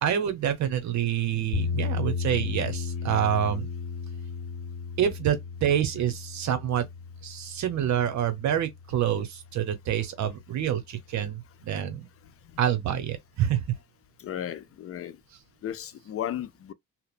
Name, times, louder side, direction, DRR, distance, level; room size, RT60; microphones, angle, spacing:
voice 1, 0.0-3.7 5.0-6.9 7.2-12.1 12.6-13.8, right 10 dB, 70° right, 0.9 m, -27 dB
sound 1, 1.5-9.6, left 5 dB, 75° left, 0.8 m, -34 dB
voice 2, 12.2-12.6 14.2-15.2 15.6-16.7, left 11 dB, 50° left, 0.5 m, -35 dB
2.8 x 2.0 x 2.4 m
cardioid pair, 90°, 30 cm